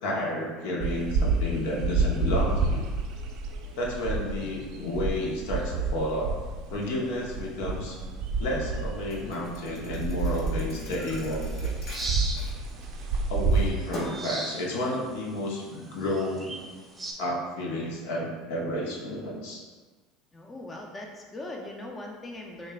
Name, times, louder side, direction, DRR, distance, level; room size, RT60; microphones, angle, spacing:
voice 1, 0.0-2.9 3.7-6.3 6.7-8.0 8.4-11.7 13.3-16.6 17.2-19.6, left 1 dB, 75° left, -2 dB, 0.8 m, -31 dB
sound 1, 0.8-13.7, right 3 dB, 60° right, 0.4 m, -29 dB
Thump thud, 9.1-13.1 13.5-14.3, equal, 45° left, 1.1 m, -41 dB
sound 2, 11.0-17.1, right 2 dB, 15° right, 0.8 m, -40 dB
voice 2, 20.3-22.7, left 1 dB, 20° left, 0 dB, 0.5 m, -40 dB
6.1 x 2.4 x 2.2 m, 1.4 s
hypercardioid pair, 90°, 0 cm